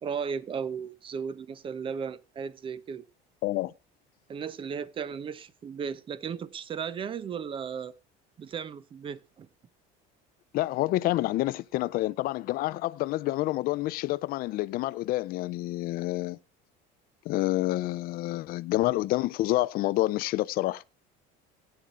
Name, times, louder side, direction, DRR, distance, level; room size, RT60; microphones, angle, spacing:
voice 1, 0.0-3.0 4.3-7.9 8.4-9.5, right 6 dB, 25° right, 0.7 m, -35 dB
voice 2, 3.4-3.7 10.5-16.4 17.3-20.8, left 17 dB, 50° left, 0.5 m, -28 dB
17.0 x 8.9 x 2.5 m
cardioid pair, 145°, 19 cm